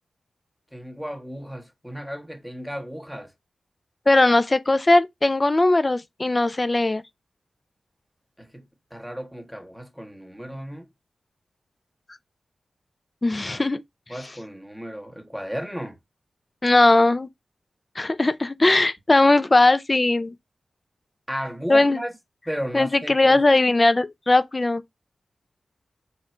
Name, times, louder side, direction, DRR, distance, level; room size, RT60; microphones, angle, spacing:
voice 1, 0.7-3.3 8.4-10.9 13.5-13.7 14.1-16.0 21.3-22.1 22.5-23.4, equal, ahead, 1.0 m, -34 dB
voice 2, 4.1-7.0 13.2-13.8 16.6-17.3 18.0-20.3 21.7-22.0 22.7-24.8, left 2 dB, 25° left, 0.4 m, -19 dB
3.7 x 3.0 x 4.3 m
wide cardioid pair, 105°, 0 cm